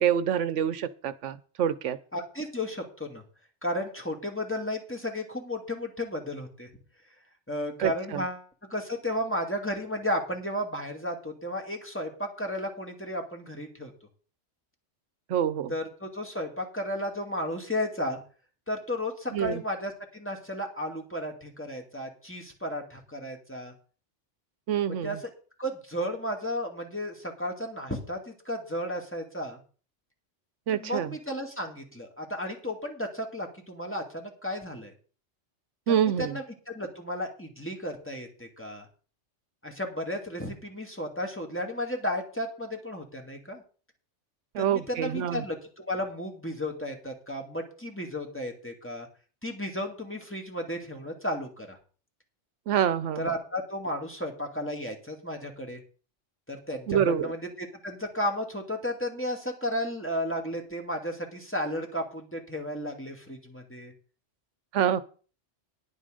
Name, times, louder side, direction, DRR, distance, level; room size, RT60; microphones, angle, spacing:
voice 1, 0.0-2.0 7.8-8.2 15.3-15.7 19.3-19.6 24.7-25.2 30.7-31.1 35.9-36.3 44.5-45.4 52.7-53.3 56.9-57.3 64.7-65.0, right 9 dB, 85° right, 15 dB, 1.0 m, -26 dB
voice 2, 2.1-3.2 3.6-6.7 7.5-13.9 15.7-18.2 18.7-23.7 24.9-25.3 25.6-29.6 30.7-34.9 35.9-38.9 39.6-43.6 44.6-49.1 49.4-51.8 53.2-55.8 56.5-63.9, equal, 10° left, 2 dB, 2.3 m, -33 dB
10.5 x 8.7 x 5.1 m, 0.39 s
omnidirectional pair, 1.2 m